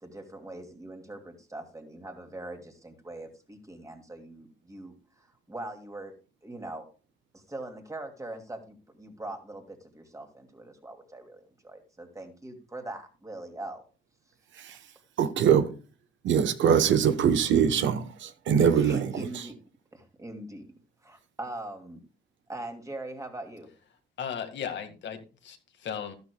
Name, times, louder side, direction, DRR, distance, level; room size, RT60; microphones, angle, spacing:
voice 1, 0.0-6.1 6.4-6.9 7.3-13.8 14.7-14.8 18.7-19.6 19.9-20.7 21.0-22.0 22.5-23.7, right 2 dB, 15° right, 2.6 m, -42 dB
voice 2, 15.2-15.7 16.2-19.2, right 8 dB, 70° right, 1.1 m, -23 dB
voice 3, 24.2-26.1, left 8 dB, 65° left, 1.9 m, -36 dB
12.5 x 12.0 x 2.3 m
cardioid pair, 90°, 20 cm